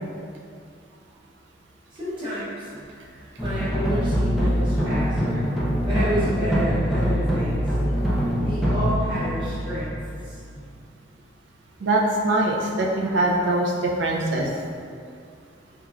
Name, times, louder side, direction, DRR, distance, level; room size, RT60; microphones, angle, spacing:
voice 1, 1.9-5.5 5.8-7.7 8.4-10.0 10.2-10.4, equal, 25° right, -11 dB, 0.8 m, -30 dB
sound 1, 3.4-10.6, equal, ahead, 0.3 m, -24 dB
voice 2, 11.8-14.5, right 1 dB, 75° right, -1 dB, 0.4 m, -22 dB
3.1 x 2.3 x 2.4 m, 2.3 s
head